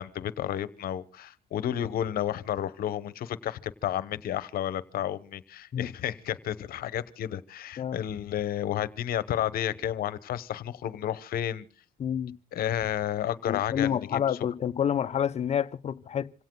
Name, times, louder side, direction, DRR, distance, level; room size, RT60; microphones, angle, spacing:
voice 1, 0.0-11.7 12.5-14.4, left 11 dB, 60° left, 1.0 m, -31 dB
voice 2, 12.0-12.4 13.4-16.3, left 9 dB, 40° left, 0.6 m, -28 dB
27.0 x 17.5 x 2.3 m
cardioid pair, 110°, 17 cm